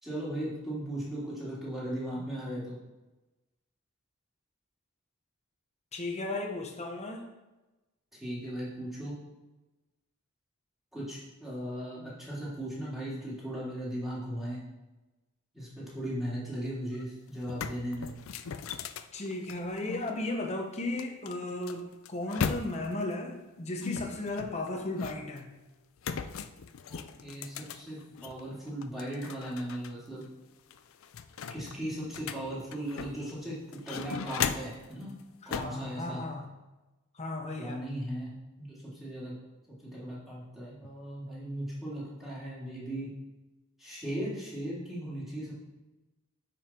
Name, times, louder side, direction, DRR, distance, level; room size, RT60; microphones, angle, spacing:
voice 1, 0.0-2.8 8.1-9.2 10.9-14.6 15.5-18.1 26.9-30.2 31.5-35.1 35.5-36.2 37.5-39.3 39.8-43.1 43.8-45.5, right 1 dB, ahead, -9 dB, 3.0 m, -37 dB
voice 2, 5.9-7.2 19.1-25.5 35.4-36.5 37.1-37.8, left 2 dB, 30° left, 2 dB, 0.9 m, -35 dB
sound 1, 16.9-17.0 17.4-20.1 21.0-23.0 23.8-25.4 26.0-28.4 28.8-29.9 30.2-30.3 30.7-33.3 33.7-34.9 35.5-35.8, left 6 dB, 70° left, 0.4 m, -37 dB
8.9 x 5.4 x 4.4 m, 1.1 s
head